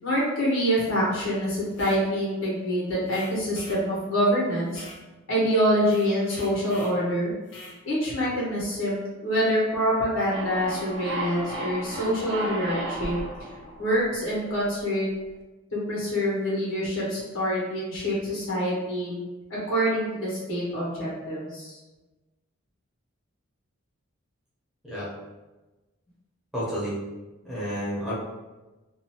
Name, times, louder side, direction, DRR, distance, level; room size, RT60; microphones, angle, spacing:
voice 1, 0.0-4.8 5.3-7.3 7.8-13.2 13.8-15.1 15.7-19.2 19.7-21.8, equal, 75° left, -7 dB, 1.3 m, -26 dB
sound 1, 1.7-2.0 3.1-3.8 4.7-5.0 5.8-7.0 7.5-7.8, left 2 dB, 60° left, 0.5 m, -45 dB
sound 2, 10.3-14.8, right 1 dB, 55° right, 0.4 m, -34 dB
voice 2, 26.5-27.0 27.4-28.1, equal, ahead, -10 dB, 0.9 m, -30 dB
2.7 x 2.5 x 2.9 m, 1.1 s
head